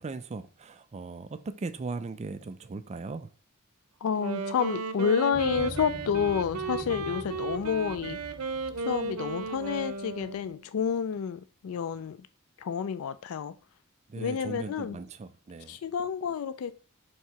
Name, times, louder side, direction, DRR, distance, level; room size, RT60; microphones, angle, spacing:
voice 1, 0.0-3.3 14.1-15.8, right 3 dB, 30° right, 0.4 m, -38 dB
voice 2, 4.0-8.2 8.8-12.2 12.6-13.5 14.2-15.0 15.7-16.7, left 7 dB, 70° left, 0.4 m, -29 dB
Wind instrument woodwind instrument, 4.1-10.6, right 3 dB, 85° right, 0.7 m, -35 dB
Motorcycle, 5.3-10.5, equal, 50° right, 1.6 m, -45 dB
4.6 x 3.7 x 5.5 m
head